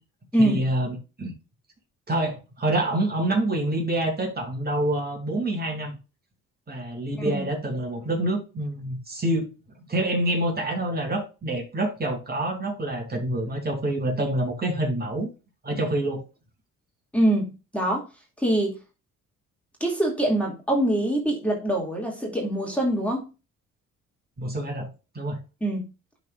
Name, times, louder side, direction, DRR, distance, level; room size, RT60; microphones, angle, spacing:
voice 1, 0.4-1.3 2.1-6.0 6.7-9.5 9.9-15.3 15.6-16.2 24.4-24.9 25.1-25.4, right 1 dB, 30° right, 2.5 m, -27 dB
voice 2, 17.1-18.1 18.4-18.8 19.8-23.3 25.6-25.8, right 1 dB, 5° left, 2.4 m, -24 dB
12.0 x 4.2 x 2.4 m
cardioid pair, 90°, 30 cm